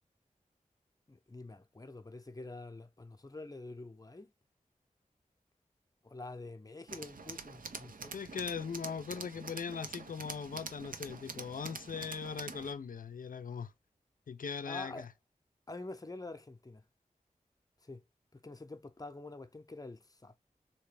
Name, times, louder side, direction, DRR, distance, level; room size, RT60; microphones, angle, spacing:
voice 1, 1.1-4.3 6.0-8.2 14.6-15.1 15.7-16.8 17.8-18.0 18.3-20.3, left 2 dB, 25° left, 0.6 m, -47 dB
Tools, 6.9-12.7, right 4 dB, 80° right, 0.6 m, -46 dB
voice 2, 8.1-13.7 14.3-15.1, left 6 dB, 75° left, 0.5 m, -40 dB
3.3 x 2.8 x 3.3 m
wide cardioid pair, 50°, 14 cm